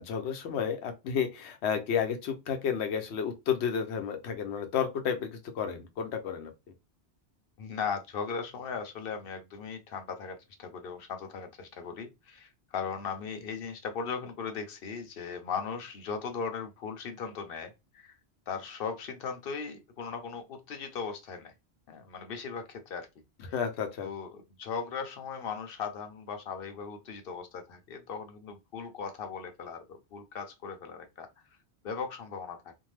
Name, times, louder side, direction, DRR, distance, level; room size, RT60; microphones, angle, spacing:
voice 1, 0.0-6.5 23.5-24.1, left 7 dB, 85° left, 0.9 m, -31 dB
voice 2, 7.6-18.2 18.5-21.5 21.9-23.1 24.0-31.6 31.8-32.7, left 6 dB, 65° left, 0.8 m, -38 dB
2.6 x 2.2 x 3.1 m
omnidirectional pair, 1.1 m